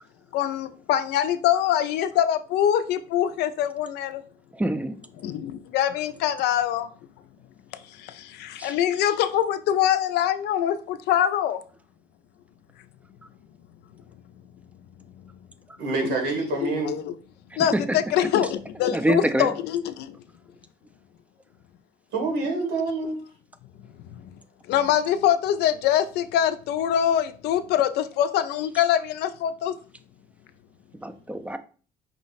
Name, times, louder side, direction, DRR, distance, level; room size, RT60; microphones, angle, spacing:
voice 1, 0.3-4.2 5.2-6.9 7.7-11.6 16.0-16.2 16.5-17.2 17.6-20.2 23.8-24.4 24.7-29.7, left 10 dB, 80° left, 0.4 m, -24 dB
voice 2, 4.5-5.0 8.6-8.7 17.7-17.8 18.9-19.5 31.0-31.6, right 1 dB, 10° right, 0.3 m, -25 dB
voice 3, 15.8-16.9 22.1-23.2, right 4 dB, 90° right, 1.5 m, -27 dB
5.0 x 2.1 x 3.9 m
cardioid pair, 110°, 17 cm